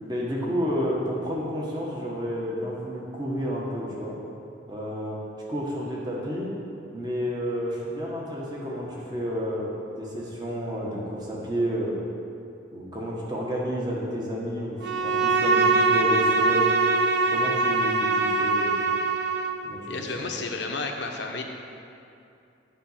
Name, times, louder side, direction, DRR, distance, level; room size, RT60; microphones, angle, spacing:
voice 1, 0.0-4.2 4.7-5.2 5.5-6.5 6.9-9.7 10.0-12.0 12.7-16.7 17.3-18.8 19.6-20.3, equal, 20° right, -4 dB, 1.5 m, -30 dB
Bowed string instrument, 14.8-19.6, right 3 dB, 60° right, 0.6 m, -22 dB
voice 2, 19.9-21.4, left 3 dB, 65° left, 2 dB, 1.0 m, -32 dB
9.2 x 5.3 x 7.4 m, 2.6 s
head